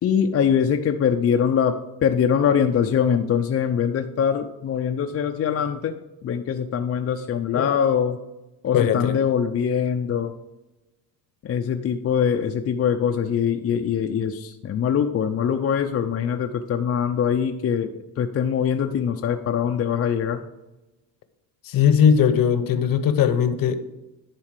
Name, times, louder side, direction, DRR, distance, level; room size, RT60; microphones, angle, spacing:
voice 1, 0.0-1.8 2.0-8.2 8.6-10.3 11.4-20.4, left 8 dB, 35° left, 4 dB, 0.5 m, -23 dB
voice 2, 8.7-9.1 21.6-23.7, left 8 dB, 50° left, 11 dB, 0.9 m, -19 dB
11.0 x 4.1 x 6.6 m, 1.0 s
cardioid pair, 125°, 43 cm